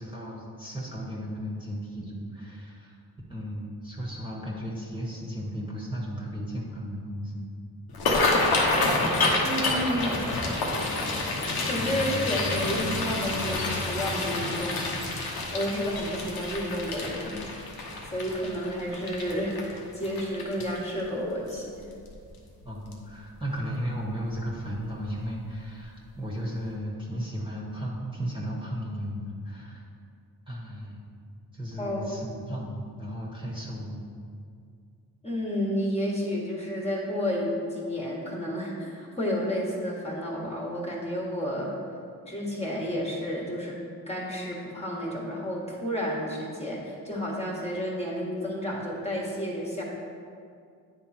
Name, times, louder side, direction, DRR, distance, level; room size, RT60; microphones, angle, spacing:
voice 1, 0.0-3.0 3.3-7.5 20.6-20.7 22.6-29.8 30.5-31.0 31.5-34.0, equal, 15° right, -5 dB, 1.5 m, -35 dB
sound 1, 7.9-21.0 21.5-21.8 22.1-22.5 22.9-23.1 24.3-24.5 24.8-25.0 25.4-25.5, left 2 dB, 75° left, 1.1 m, -28 dB
voice 2, 9.4-10.2 11.6-15.0 15.5-17.8 18.1-21.8 31.8-32.5 35.2-41.7 42.3-43.8 44.1-49.8, equal, 15° left, -4 dB, 1.5 m, -31 dB
9.3 x 3.6 x 4.3 m, 2.3 s
cardioid pair, 65°, 37 cm